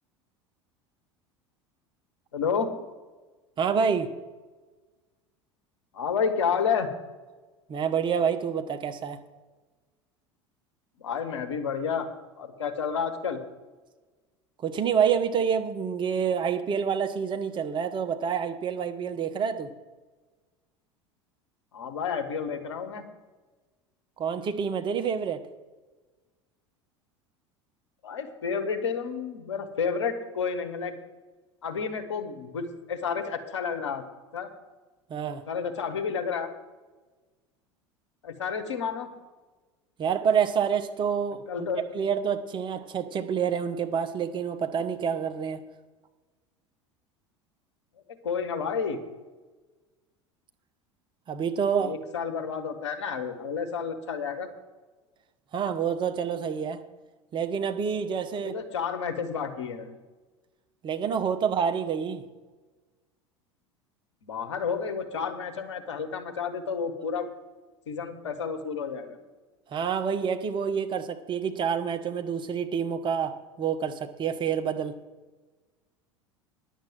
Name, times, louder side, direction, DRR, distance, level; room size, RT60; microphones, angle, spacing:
voice 1, 2.3-2.7 5.9-6.9 11.0-12.1 12.4-13.4 21.7-23.0 28.0-30.9 31.6-34.0 34.3-34.5 35.5-36.5 38.2-39.1 41.5-41.8 48.2-49.0 51.8-54.5 58.4-59.9 64.2-67.3 67.9-69.2, left 6 dB, 70° left, 6 dB, 1.4 m, -30 dB
voice 2, 3.6-4.1 7.7-9.2 14.6-19.7 24.2-25.4 35.1-35.4 40.0-41.7 41.9-45.6 51.3-51.9 55.5-56.8 57.3-58.5 60.8-62.2 69.7-74.9, right 7 dB, 30° right, 8 dB, 1.0 m, -27 dB
10.5 x 7.4 x 7.7 m, 1.3 s
figure-of-eight pair, 75°, 15 cm